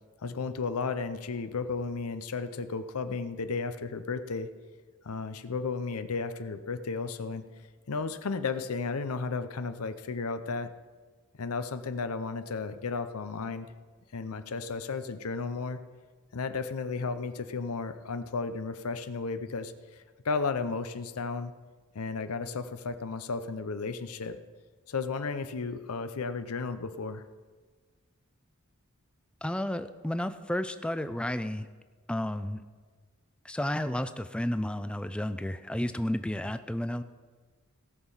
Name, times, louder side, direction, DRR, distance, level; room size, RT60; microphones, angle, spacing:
voice 1, 0.2-4.5 5.0-7.4 7.9-10.7 11.4-13.7 14.1-15.8 16.3-21.5 21.9-24.4 24.9-27.2, left 4 dB, 90° left, 10 dB, 0.6 m, -34 dB
voice 2, 29.4-31.7 32.1-32.6 33.4-37.0, left 1 dB, 5° left, 10 dB, 0.4 m, -32 dB
17.5 x 6.4 x 5.6 m, 1.4 s
head